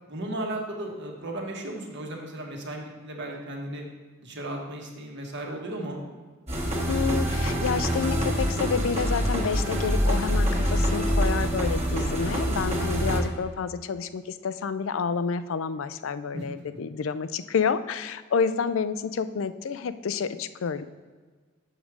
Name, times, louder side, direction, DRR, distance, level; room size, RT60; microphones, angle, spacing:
voice 1, 0.1-3.8 4.2-6.0 16.3-16.4, right 1 dB, 55° right, 0 dB, 1.5 m, -35 dB
sound 1, 6.5-13.2, equal, 30° right, 1.4 m, -25 dB
voice 2, 6.9-20.9, left 6 dB, 65° left, 13 dB, 0.4 m, -29 dB
7.3 x 4.9 x 6.1 m, 1.5 s
head